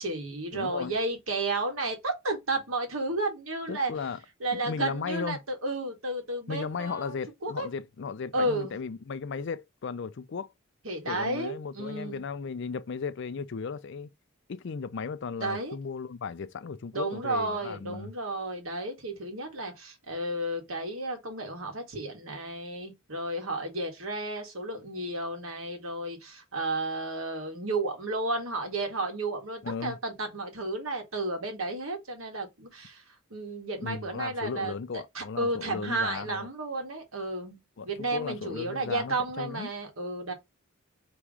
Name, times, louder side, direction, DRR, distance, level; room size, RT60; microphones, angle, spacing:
voice 1, 0.0-3.9 4.4-7.1 7.4-7.7 8.3-8.8 10.8-12.2 15.4-15.8 16.9-33.0 33.3-37.6 37.8-40.3, right 2 dB, 85° right, 1.7 m, -32 dB
voice 2, 0.5-0.9 3.7-4.2 4.5-5.4 6.5-10.5 11.1-14.1 14.5-18.1 29.6-30.0 33.8-36.5 37.8-39.7, left 5 dB, 60° left, 0.4 m, -36 dB
3.5 x 3.1 x 4.8 m
head